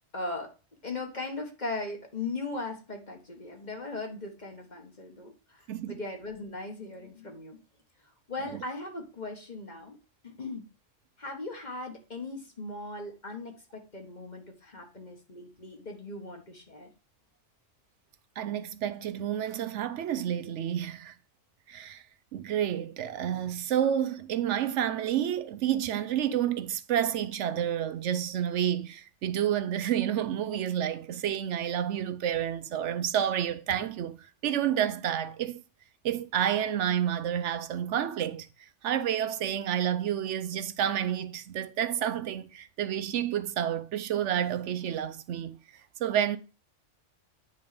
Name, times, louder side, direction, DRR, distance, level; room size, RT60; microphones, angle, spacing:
voice 1, 0.1-0.5 0.8-7.6 8.3-10.0 10.2-10.7 11.2-16.9, left 2 dB, 35° left, 1.6 m, -38 dB
voice 2, 18.4-21.1 21.7-22.0 22.3-35.6 36.0-45.6 46.0-46.4, right 10 dB, 75° right, 0.9 m, -30 dB
9.3 x 3.6 x 5.1 m
omnidirectional pair, 1.3 m